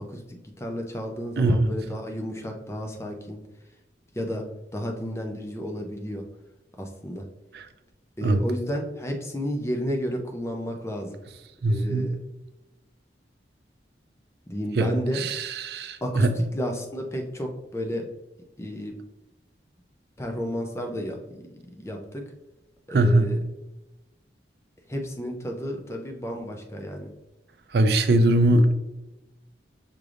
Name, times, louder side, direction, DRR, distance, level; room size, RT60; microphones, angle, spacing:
voice 1, 0.1-3.4 4.1-4.4 4.7-6.2 6.8-7.2 8.2-11.2 11.7-12.2 14.5-15.3 16.0-16.3 16.5-18.0 18.6-18.9 20.2-21.4 21.8-22.2 22.9-23.4 24.9-27.1, equal, 15° left, 2 dB, 0.5 m, -32 dB
voice 2, 1.4-1.7 7.5-7.7 8.2-8.4 11.6-12.1 14.7-16.4 22.9-23.3 27.7-28.7, right 1 dB, 60° right, 9 dB, 0.4 m, -21 dB
5.9 x 3.3 x 2.5 m, 1.0 s
head